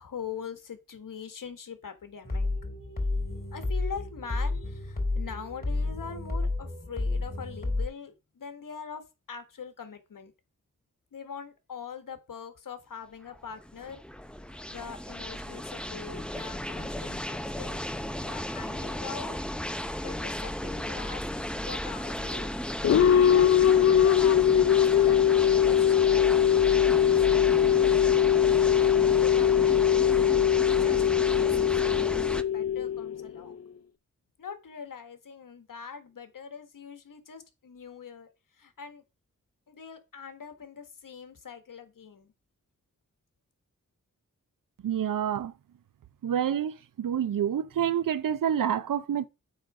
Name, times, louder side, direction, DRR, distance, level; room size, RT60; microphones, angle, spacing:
voice 1, 0.0-2.5 3.5-10.3 11.1-14.0 14.7-17.9 18.2-19.4 20.0-21.2 21.5-22.5 23.2-26.5 27.2-33.6 34.4-39.0 39.7-42.3, left 6 dB, 85° left, 1.6 m, -43 dB
sound 1, 2.2-7.9, left 2 dB, 30° left, 4.6 m, -31 dB
sound 2, 13.3-32.4, left 1 dB, 5° left, 0.6 m, -34 dB
sound 3, 22.8-33.5, left 9 dB, 50° left, 0.5 m, -22 dB
voice 2, 44.8-45.5 46.2-49.3, right 9 dB, 90° right, 0.7 m, -28 dB
8.7 x 4.0 x 6.1 m
wide cardioid pair, 95°, 32 cm